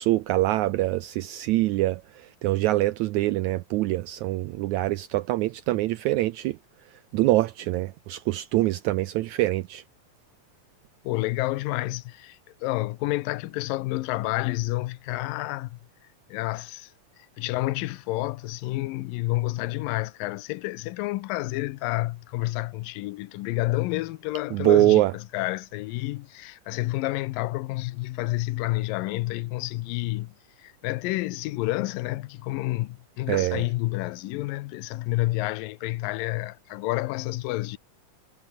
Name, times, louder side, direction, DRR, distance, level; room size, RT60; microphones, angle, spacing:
voice 1, 0.0-6.6 7.1-9.8 24.5-25.1 33.3-33.6, right 17 dB, 90° right, 1.7 m, -24 dB
voice 2, 11.1-15.8 16.3-16.9 17.4-30.3 30.6-37.8, left 19 dB, 85° left, 2.4 m, -29 dB
omnidirectional pair, 3.9 m